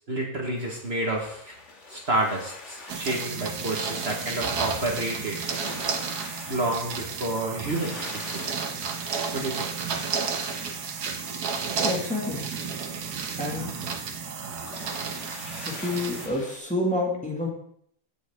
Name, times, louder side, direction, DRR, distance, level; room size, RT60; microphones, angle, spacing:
voice 1, 0.0-1.6 1.9-5.4 6.5-8.5 9.3-9.7, right 2 dB, 40° right, -1 dB, 1.7 m, -29 dB
sound 1, 0.6-16.6, left 3 dB, 45° left, 2.0 m, -45 dB
sound 2, 2.9-16.3, right 5 dB, 80° right, 1.6 m, -32 dB
voice 2, 11.8-12.5 13.4-13.8 15.7-17.5, left 2 dB, 5° left, -2 dB, 1.9 m, -29 dB
16.0 x 6.3 x 3.6 m, 0.67 s
omnidirectional pair, 1.7 m